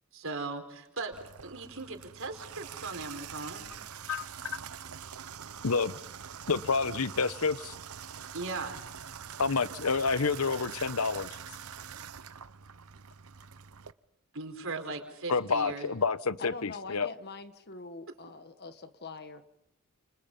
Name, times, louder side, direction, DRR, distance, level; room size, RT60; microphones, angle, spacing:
voice 1, 0.1-1.2 1.4-3.6 8.3-8.8 14.3-15.9, right 3 dB, 65° right, 4.6 m, -38 dB
Water tap faucet / Bathtub (filling or washing), 1.1-13.9, right 7 dB, 80° right, 0.9 m, -45 dB
voice 2, 5.6-6.0 6.5-7.7 9.4-11.4 15.3-17.1, left 4 dB, 75° left, 1.0 m, -29 dB
voice 3, 16.4-19.4, left 4 dB, 50° left, 1.6 m, -43 dB
30.0 x 29.5 x 5.5 m
head